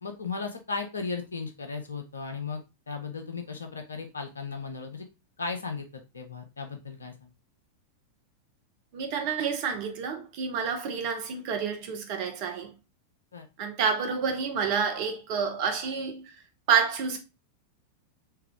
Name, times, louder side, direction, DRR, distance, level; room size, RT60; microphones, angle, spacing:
voice 1, 0.0-5.1 5.4-7.3 13.3-13.5, left 4 dB, 75° left, 0.8 m, -36 dB
voice 2, 8.9-12.7 13.6-16.4 16.7-17.2, right 6 dB, 45° right, 0.9 m, -29 dB
3.5 x 3.4 x 3.5 m
figure-of-eight pair, 90°, 0 cm